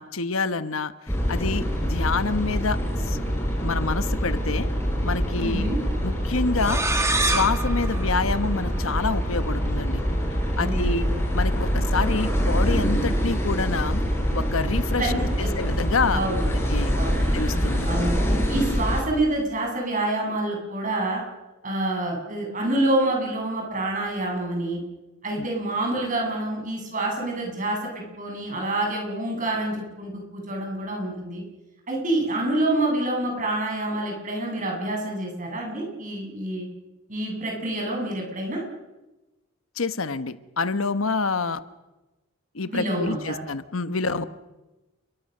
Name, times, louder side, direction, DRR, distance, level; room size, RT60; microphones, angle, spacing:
voice 1, 0.0-3.2 3.6-4.7 5.0-5.7 6.0-6.8 7.2-10.0 10.6-11.0 11.3-14.0 14.3-16.9 17.3-17.9 25.4-25.5 39.8-41.6 42.5-44.3, left 4 dB, 80° left, 12 dB, 1.1 m, -27 dB
sound 1, 1.1-19.0, equal, 10° left, 5.7 m, -25 dB
voice 2, 5.4-5.8 10.6-11.1 15.0-15.5 16.1-16.5 17.0-17.2 17.9-18.2 18.5-21.2 21.6-24.8 25.2-31.4 31.9-36.7 37.1-38.6 42.7-43.4, right 1 dB, 40° right, 0 dB, 7.8 m, -27 dB
sound 2, 6.6-9.2, right 2 dB, 15° right, 1.9 m, -27 dB
29.5 x 22.5 x 6.7 m, 1.1 s
head